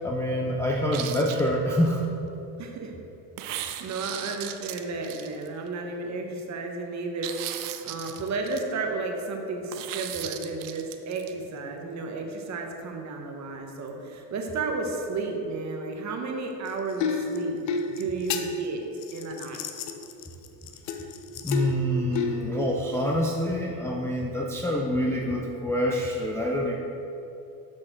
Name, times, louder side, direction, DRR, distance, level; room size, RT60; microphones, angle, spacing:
voice 1, 0.0-2.0 21.4-26.8, left 1 dB, 5° left, -1 dB, 0.3 m, -26 dB
sound 1, 0.9-1.9 3.4-5.7 7.2-8.6 9.7-11.3, right 12 dB, 60° right, 0.6 m, -37 dB
voice 2, 2.6-2.9 3.4-17.6 17.9-18.8 19.1-19.6, right 3 dB, 35° right, 3 dB, 1.0 m, -33 dB
sound 2, 16.7-23.0 24.7-24.8, left 4 dB, 65° left, 0.7 m, -32 dB
6.3 x 6.1 x 4.4 m, 2.9 s
supercardioid pair, 110°, 46 cm